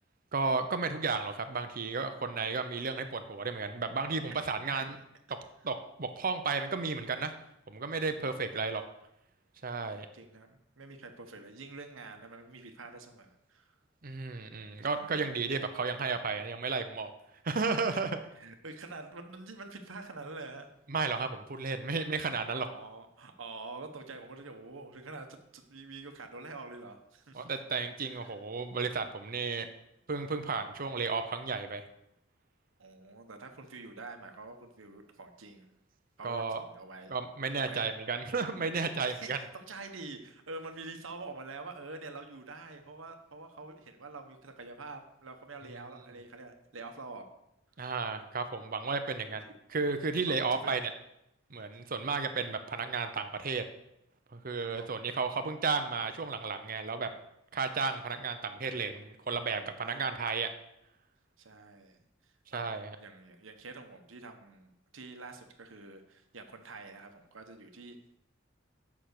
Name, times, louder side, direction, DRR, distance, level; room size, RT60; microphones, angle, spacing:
voice 1, 0.3-5.0 5.6-7.3 7.7-8.8 9.6-10.1 14.0-17.1 17.4-18.2 20.9-22.7 27.3-29.7 30.1-31.8 36.2-36.6 37.1-39.4 47.8-49.4 49.7-50.8 51.5-53.6 54.3-57.1 57.5-60.5 62.5-63.0, right 4 dB, 45° right, 8 dB, 0.8 m, -33 dB
voice 2, 8.2-8.5 9.7-13.8 14.8-15.3 17.9-18.0 18.3-20.7 22.5-27.5 28.0-28.4 32.8-35.7 36.2-37.1 37.6-37.9 39.0-47.3 49.2-49.6 50.3-50.9 54.8-55.0 59.6-60.0 61.4-62.7 63.0-68.2, right 3 dB, 80° right, 6 dB, 1.2 m, -47 dB
8.1 x 6.0 x 6.6 m, 0.82 s
head